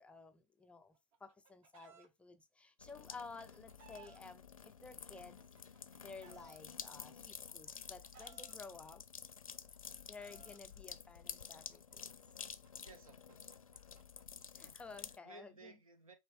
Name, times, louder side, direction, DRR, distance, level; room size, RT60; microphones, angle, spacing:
voice 1, 0.0-5.4 6.0-9.0 10.0-12.1 14.5-15.8, left 4 dB, 5° left, 0.3 m, -54 dB
Chicken rooster, 0.9-2.1 3.1-4.2 5.2-6.6 7.5-8.5 9.5-10.6 11.7-15.0, right 7 dB, 35° right, 0.8 m, -63 dB
sound 1, 2.8-15.2, left 7 dB, 80° left, 0.5 m, -51 dB
voice 2, 12.8-13.6 14.6-16.1, right 2 dB, 90° right, 1.0 m, -59 dB
5.1 x 2.7 x 3.3 m
figure-of-eight pair, 110°, 17 cm